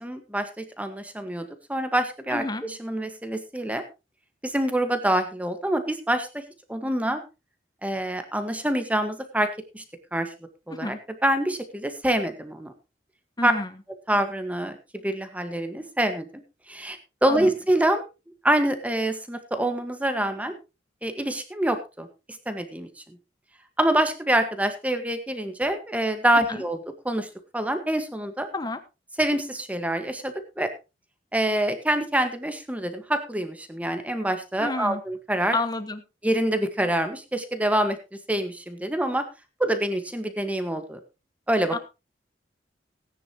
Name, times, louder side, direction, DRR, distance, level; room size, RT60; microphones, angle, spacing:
voice 1, 0.0-3.8 4.4-6.4 6.7-7.2 7.8-9.5 9.7-9.8 10.1-10.3 10.7-11.0 11.2-12.7 13.4-13.5 14.1-16.4 16.7-18.0 18.4-20.5 21.0-22.1 22.4-23.2 23.8-28.5 29.2-30.7 31.3-35.6 36.2-38.0 38.3-39.2 39.6-41.0 41.5-41.8, right 1 dB, 10° right, 7 dB, 1.6 m, -26 dB
voice 2, 2.3-2.6 10.8-11.0 13.4-13.7 17.3-17.5 28.5-28.8 34.6-35.0 35.5-36.0 41.7-41.8, left 2 dB, 25° left, 10 dB, 1.2 m, -29 dB
18.0 x 10.0 x 3.0 m, 0.28 s
head